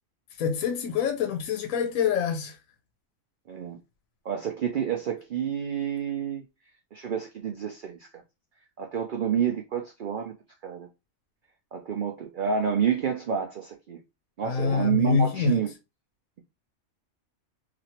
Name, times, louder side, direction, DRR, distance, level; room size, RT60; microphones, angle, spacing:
voice 1, 0.4-2.6 14.4-15.6, left 6 dB, 85° left, 1.0 m, -26 dB
voice 2, 3.5-3.8 4.2-6.4 6.9-8.2 8.8-10.3 10.6-10.9 11.7-14.0 14.4-15.7, right 8 dB, 70° right, 0.4 m, -29 dB
2.9 x 2.5 x 2.8 m
omnidirectional pair, 1.4 m